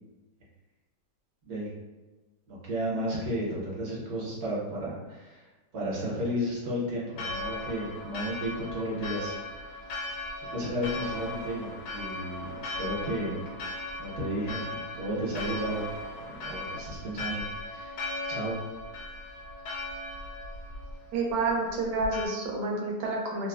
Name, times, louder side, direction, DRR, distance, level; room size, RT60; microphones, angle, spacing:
voice 1, 2.5-5.5 5.7-9.3 10.5-13.4 14.0-15.9 16.2-17.4 17.7-18.0 18.3-18.6, equal, 60° right, -6 dB, 1.3 m, -33 dB
Church bell, 7.1-22.3, left 2 dB, 90° left, 1.2 m, -38 dB
voice 2, 21.1-23.5, right 3 dB, 80° right, -1 dB, 1.3 m, -29 dB
3.2 x 2.0 x 2.3 m, 1.2 s
omnidirectional pair, 1.8 m